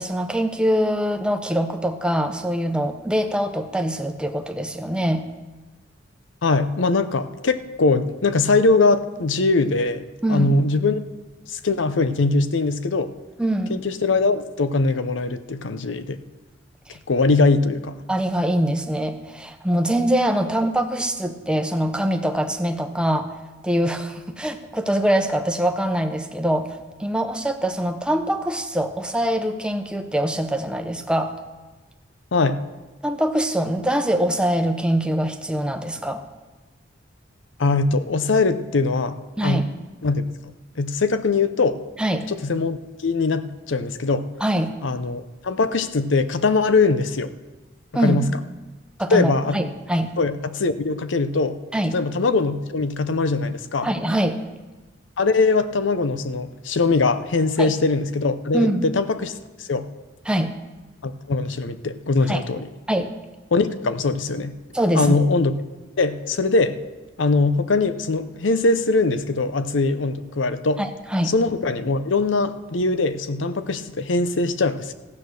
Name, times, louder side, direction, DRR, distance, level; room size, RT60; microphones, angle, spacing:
voice 1, 0.0-5.2 10.2-10.5 13.4-13.8 18.1-23.3 23.6-31.4 33.0-36.2 39.4-39.6 42.0-42.3 44.4-44.7 47.9-48.2 49.0-50.1 51.7-52.0 53.8-54.4 57.6-57.7 58.5-58.8 60.3-60.5 62.3-62.4 62.9-63.1 64.7-65.2 70.8-71.3, right 1 dB, 5° right, 6 dB, 0.8 m, -23 dB
voice 2, 6.4-11.0 11.5-13.1 13.7-16.2 17.1-18.0 32.3-32.6 37.6-39.7 40.0-40.3 40.8-41.8 42.3-44.3 44.8-47.3 48.0-48.3 49.1-49.6 50.2-51.6 51.9-53.9 55.2-59.3 59.6-59.9 61.0-62.7 63.5-64.5 64.9-65.5 66.0-66.8 67.2-70.8 71.2-74.9, left 3 dB, 80° left, 12 dB, 0.7 m, -21 dB
14.5 x 8.5 x 6.4 m, 1.2 s
head